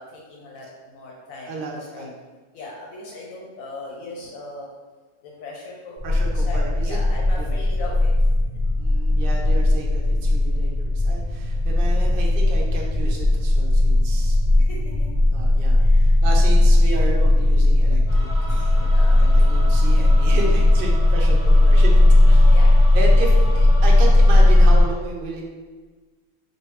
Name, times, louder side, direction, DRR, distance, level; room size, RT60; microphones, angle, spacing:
voice 1, 0.0-2.0 2.5-4.7 5.2-8.1 14.2-14.3 14.6-15.1 15.8-16.2 18.5-19.7 22.5-22.9, left 2 dB, 80° left, -3 dB, 1.0 m, -39 dB
voice 2, 1.5-2.1 6.0-7.0 7.4-7.5 8.8-14.4 15.3-18.3 19.2-22.0 22.3-22.6 22.9-25.4, right 2 dB, 55° right, -1 dB, 0.6 m, -32 dB
sound 1, 6.0-24.8, left 1 dB, 55° left, 0.4 m, -16 dB
sound 2, 18.1-24.8, left 1 dB, 15° right, 0.8 m, -36 dB
3.2 x 2.5 x 3.1 m, 1.3 s
omnidirectional pair, 1.4 m